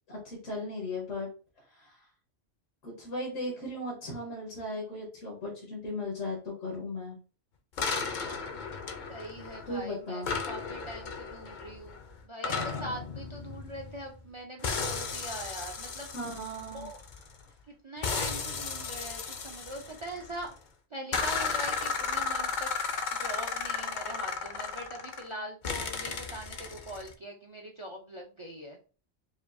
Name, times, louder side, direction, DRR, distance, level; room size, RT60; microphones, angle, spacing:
voice 1, 0.1-1.3 1.6-2.1 2.8-7.2 9.7-10.3 16.1-16.9, left 1 dB, 90° left, -3 dB, 1.6 m, -37 dB
sound 1, 7.8-9.8 10.2-14.3 14.6-17.4 18.0-20.5 21.1-25.3 25.6-27.1, left 5 dB, 55° left, 0.5 m, -34 dB
voice 2, 9.1-12.0 12.2-16.1 16.7-17.0 17.7-20.5 20.9-22.8 23.1-28.8, right 1 dB, 50° right, 2 dB, 0.3 m, -42 dB
5.1 x 2.3 x 2.5 m, 0.37 s
omnidirectional pair, 1.3 m